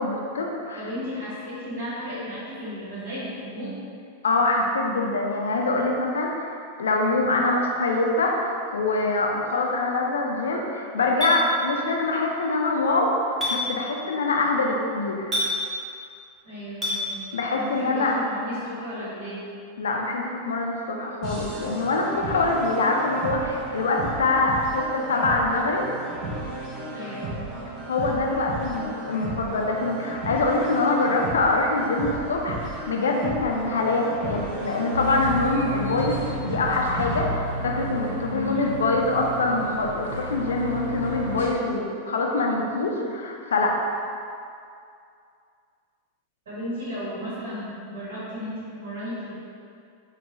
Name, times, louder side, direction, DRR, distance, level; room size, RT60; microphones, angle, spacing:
voice 1, 0.0-0.8 4.2-15.3 17.3-18.1 18.5-18.6 19.8-25.8 27.9-44.0, left 2 dB, 65° left, 0 dB, 0.4 m, -24 dB
voice 2, 0.7-3.7 16.4-17.3 17.5-19.4 26.9-27.5 38.3-38.8 46.4-49.3, left 1 dB, 60° right, -9 dB, 1.4 m, -34 dB
Chink clink, 11.2-11.4 13.4-13.6 15.3-15.5 16.8-17.0, left 1 dB, 20° right, 1.1 m, -25 dB
sound 1, 21.2-37.2, right 2 dB, 40° right, 0.7 m, -34 dB
sound 2, 34.9-41.5, equal, 75° right, 1.0 m, -33 dB
4.5 x 2.3 x 2.8 m, 2.4 s
figure-of-eight pair, 90°, 0 cm